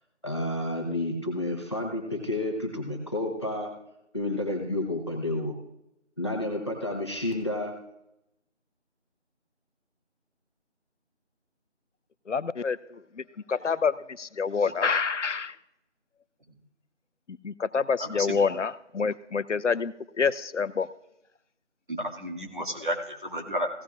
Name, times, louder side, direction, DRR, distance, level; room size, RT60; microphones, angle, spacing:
voice 1, 0.2-3.7 4.1-5.5 6.2-7.7, left 1 dB, 25° left, 1 dB, 1.1 m, -30 dB
voice 2, 12.3-15.6 17.3-20.9, left 5 dB, 85° left, 15 dB, 0.7 m, -28 dB
voice 3, 18.0-18.4 21.9-23.7, equal, 45° right, 1 dB, 2.0 m, -32 dB
16.5 x 11.5 x 2.4 m, 0.83 s
figure-of-eight pair, 175°, 35 cm